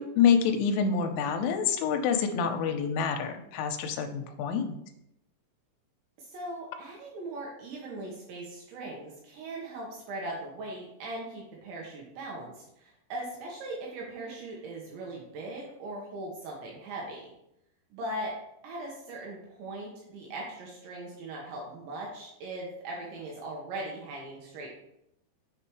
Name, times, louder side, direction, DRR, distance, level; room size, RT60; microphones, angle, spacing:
voice 1, 0.0-4.8, left 6 dB, 85° left, 5 dB, 3.1 m, -27 dB
voice 2, 6.2-17.2 17.9-18.3 18.6-24.7, right 2 dB, 75° right, -2 dB, 3.3 m, -39 dB
7.0 x 6.8 x 3.1 m, 0.79 s
omnidirectional pair, 5.7 m